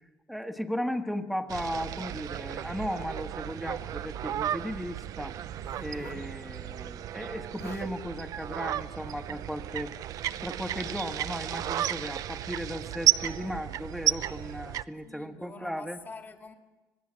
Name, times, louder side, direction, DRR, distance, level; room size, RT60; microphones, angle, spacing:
voice 1, 0.3-5.4 5.8-9.9 10.4-16.0, equal, ahead, 6 dB, 1.4 m, -36 dB
sound 1, 1.5-14.8, right 11 dB, 55° right, 0.7 m, -33 dB
Zipper (clothing), 5.4-6.3 7.3-7.4 7.6-7.9 8.7-8.9, left 5 dB, 45° left, 3.0 m, -50 dB
voice 2, 15.0-16.5, left 4 dB, 25° left, 5 dB, 2.2 m, -46 dB
26.5 x 18.0 x 7.6 m, 1.2 s
cardioid pair, 115°, 7 cm